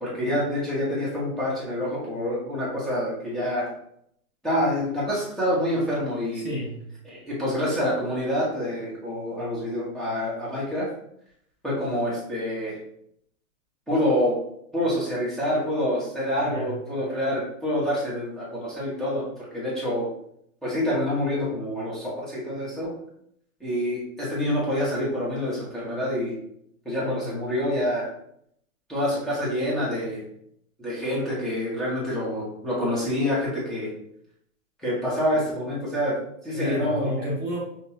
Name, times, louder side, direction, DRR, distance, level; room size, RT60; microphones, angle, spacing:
voice 1, 0.0-3.7 4.4-6.4 7.0-10.9 11.6-12.8 13.9-14.4 14.7-19.3 19.5-20.1 20.6-22.9 23.6-26.4 26.8-28.1 28.9-30.2 30.8-33.9 34.8-36.2 36.4-37.1, left 1 dB, ahead, -8 dB, 1.1 m, -27 dB
voice 2, 6.3-6.8 16.4-16.7 27.0-27.3 36.5-37.6, equal, 25° right, -6 dB, 1.0 m, -31 dB
5.4 x 2.6 x 2.8 m, 0.71 s
hypercardioid pair, 145°, 43 cm